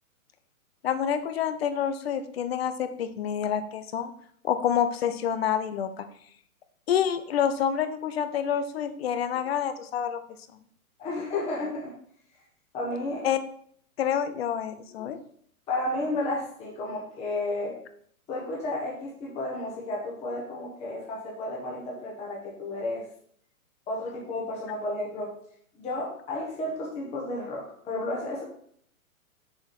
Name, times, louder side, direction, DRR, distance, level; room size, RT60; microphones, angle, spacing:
voice 1, 0.8-4.1 4.4-6.1 6.9-10.2 13.2-13.4 14.0-15.2, left 9 dB, 45° left, 11 dB, 0.7 m, -27 dB
voice 2, 11.0-11.9 12.7-13.3 15.7-17.8 18.3-23.0 23.9-25.3 25.7-28.4, left 2 dB, 15° left, -4 dB, 1.2 m, -32 dB
7.2 x 4.9 x 4.4 m, 0.63 s
hypercardioid pair, 155°, 43 cm